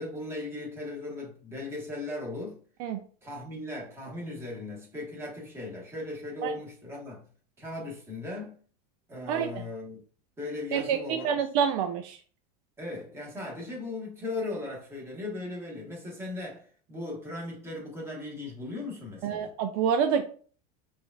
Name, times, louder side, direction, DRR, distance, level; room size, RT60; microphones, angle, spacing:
voice 1, 0.0-2.6 3.2-7.3 7.6-8.6 9.1-10.0 10.4-11.4 12.8-19.5, left 2 dB, 10° right, 1.5 m, -38 dB
voice 2, 10.7-12.2 19.2-20.2, right 7 dB, 60° right, 0.5 m, -27 dB
4.8 x 2.5 x 2.5 m
supercardioid pair, 140°, 21 cm